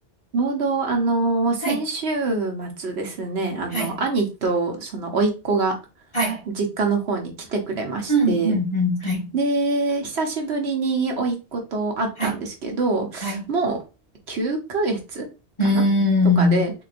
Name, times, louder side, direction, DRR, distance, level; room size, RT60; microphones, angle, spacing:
voice 1, 0.3-5.7 6.5-8.6 9.3-13.8 14.3-15.3 15.7-15.8 16.4-16.7, right 3 dB, 75° right, 1.1 m, -24 dB
voice 2, 8.1-9.3 12.2-12.3 13.2-13.4 15.6-16.6, left 1 dB, 25° left, 1.5 m, -21 dB
3.8 x 3.1 x 2.5 m
omnidirectional pair, 1.1 m